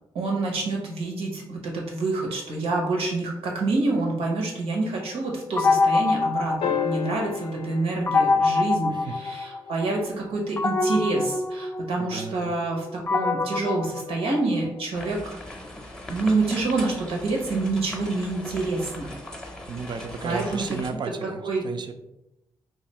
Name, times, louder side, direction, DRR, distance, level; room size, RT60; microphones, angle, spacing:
voice 1, 0.1-15.4 16.1-19.1 20.2-20.8 21.2-21.6, right 3 dB, 85° right, -1 dB, 0.9 m, -27 dB
sound 1, 5.6-7.4 8.1-9.9 10.6-14.8, left 4 dB, 25° left, 0.4 m, -25 dB
sound 2, 6.6-9.1 11.4-11.5, left 8 dB, 85° left, 0.5 m, -31 dB
voice 2, 12.0-12.5 19.7-21.9, right 5 dB, 50° right, 7 dB, 0.4 m, -34 dB
sound 3, 14.9-20.9, left 1 dB, 5° left, 0.7 m, -39 dB
2.6 x 2.4 x 4.2 m, 0.91 s
cardioid pair, 65°, 10 cm